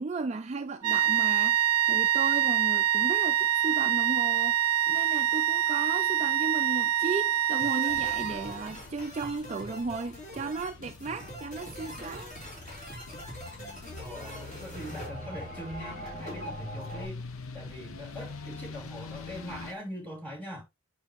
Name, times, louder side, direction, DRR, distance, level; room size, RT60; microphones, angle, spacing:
voice 1, 0.0-4.6 4.9-12.3, right 4 dB, 30° right, 0.3 m, -35 dB
sound 1, 0.8-8.7, right 11 dB, 85° right, 0.5 m, -25 dB
sound 2, 7.6-17.1, equal, 35° left, 3.8 m, -43 dB
sound 3, 7.9-19.7, left 4 dB, 70° left, 0.8 m, -45 dB
voice 2, 14.0-17.2 17.5-20.6, equal, 5° left, 3.2 m, -42 dB
8.5 x 5.9 x 3.0 m
head